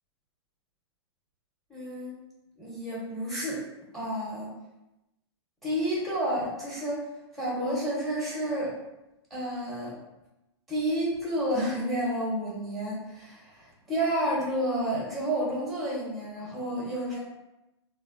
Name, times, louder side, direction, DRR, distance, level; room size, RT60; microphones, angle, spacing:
voice 1, 1.7-2.2 2.6-3.6 3.9-4.5 5.6-7.0 7.3-8.7 9.3-9.9 10.7-17.2, right 1 dB, ahead, -5 dB, 0.8 m, -30 dB
3.1 x 2.1 x 2.5 m, 0.96 s
hypercardioid pair, 125°, 15 cm